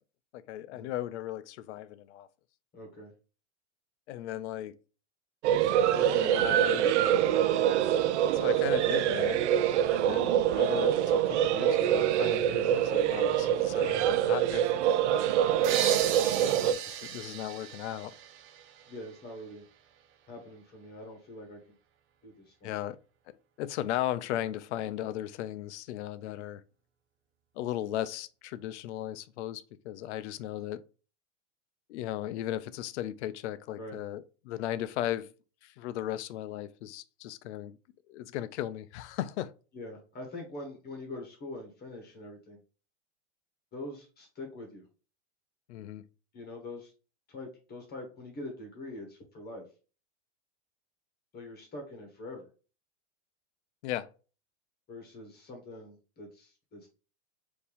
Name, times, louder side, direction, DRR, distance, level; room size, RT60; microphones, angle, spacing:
voice 1, 0.3-2.3 4.1-4.7 6.2-6.9 8.3-9.4 9.9-14.8 16.5-18.1 22.6-23.0 23.6-26.6 27.6-30.8 31.9-35.3 35.6-37.8 38.1-39.5 45.7-46.0 53.8-54.1, left 12 dB, 70° left, 0.5 m, -36 dB
voice 2, 2.7-3.1 5.9-6.5 7.0-7.3 16.3-16.6 18.9-19.6 20.3-21.6 22.2-22.7 33.8-34.0 39.7-42.6 43.7-44.8 46.3-46.9 47.3-49.6 51.3-52.5 54.9-56.9, left 1 dB, 25° left, 1.6 m, -43 dB
sound 1, 5.4-16.7, right 10 dB, 75° right, 0.5 m, -25 dB
sound 2, 15.6-19.2, right 9 dB, 35° right, 0.6 m, -35 dB
4.3 x 2.9 x 3.4 m
hypercardioid pair, 120°, 35 cm